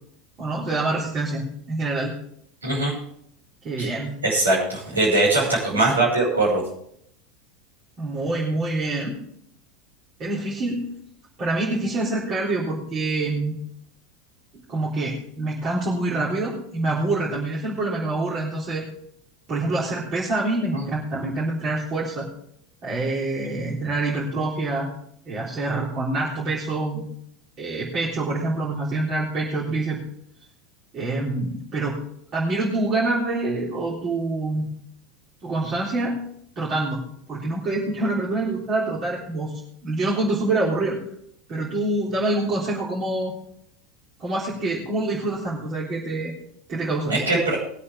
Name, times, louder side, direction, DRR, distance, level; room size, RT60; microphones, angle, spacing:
voice 1, 0.4-2.1 3.6-4.2 8.0-9.2 10.2-10.9 11.4-13.6 14.7-18.8 19.5-22.3 22.8-24.9 25.3-27.0 27.6-30.0 30.9-32.0 32.3-34.7 35.4-36.2 36.6-37.0 37.3-41.0 41.5-43.3 44.2-46.3 46.7-47.1, right 2 dB, 35° right, -6 dB, 3.7 m, -26 dB
voice 2, 2.6-2.9 3.8-3.9 4.2-6.6 20.7-20.8 47.1-47.6, right 2 dB, 80° right, -5 dB, 5.4 m, -21 dB
21.5 x 8.3 x 3.6 m, 0.70 s
figure-of-eight pair, 80°, 0 cm